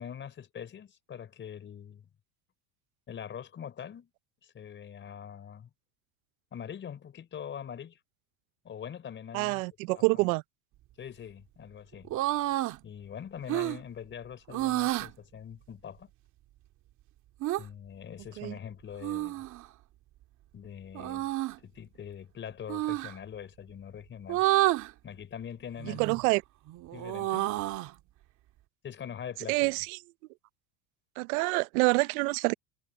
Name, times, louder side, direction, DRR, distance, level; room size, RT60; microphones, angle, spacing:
voice 1, 0.0-2.1 3.1-4.1 4.4-5.7 6.5-8.0 8.6-10.2 11.0-12.1 12.8-16.1 17.6-19.4 20.5-24.4 25.0-26.1 26.9-27.5 28.8-29.8, left 8 dB, 25° left, 5.0 m, -43 dB
voice 2, 9.3-10.4 18.4-18.5 25.9-26.4 29.5-30.0 31.2-32.5, right 26 dB, 70° right, 0.7 m, -27 dB
sound 1, 12.0-12.8 13.5-13.8 14.5-15.1 17.4-17.6 19.0-19.6 20.9-21.6 22.7-23.1 24.3-24.9 25.8-26.3 26.7-27.9, right 16 dB, 40° right, 2.4 m, -29 dB
supercardioid pair, 150°, 45 cm